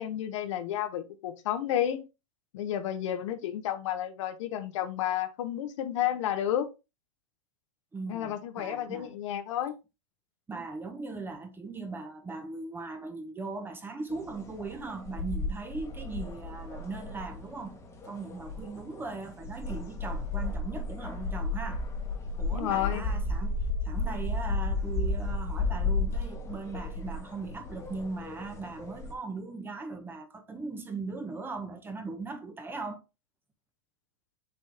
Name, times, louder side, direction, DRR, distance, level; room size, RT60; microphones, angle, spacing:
voice 1, 0.0-2.0 2.5-6.7 8.1-9.8 22.5-23.0, left 11 dB, 65° left, 1.2 m, -31 dB
voice 2, 7.9-9.2 10.5-21.8 22.4-23.6 23.8-33.0, right 3 dB, 15° right, 1.2 m, -39 dB
sound 1, 14.1-29.1, left 3 dB, 15° left, 1.5 m, -34 dB
6.7 x 4.2 x 3.5 m
hypercardioid pair, 120°, 17 cm